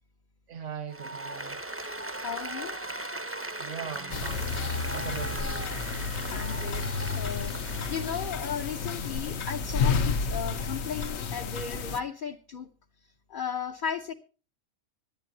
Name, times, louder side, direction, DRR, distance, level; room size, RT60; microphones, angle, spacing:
voice 1, 0.5-1.6 3.6-5.7, right 7 dB, 70° right, 1.7 m, -40 dB
Applause, 0.9-8.4, right 2 dB, 15° right, 0.7 m, -38 dB
voice 2, 2.1-2.8 6.3-7.5 7.9-12.7 13.3-14.1, left 7 dB, 45° left, 0.9 m, -35 dB
sound 1, 4.1-12.0, left 5 dB, 60° left, 1.1 m, -31 dB
25.0 x 9.1 x 2.8 m
omnidirectional pair, 1.3 m